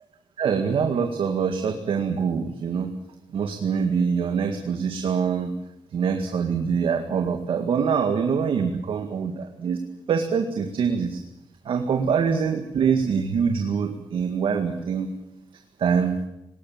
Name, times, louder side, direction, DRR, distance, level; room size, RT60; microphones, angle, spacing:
voice 1, 0.4-2.9 3.3-5.5 5.9-9.8 10.1-11.2 11.7-15.1 15.8-16.2, right 6 dB, 90° right, 5 dB, 2.1 m, -24 dB
20.0 x 18.5 x 8.9 m, 0.86 s
wide cardioid pair, 175°, 9 cm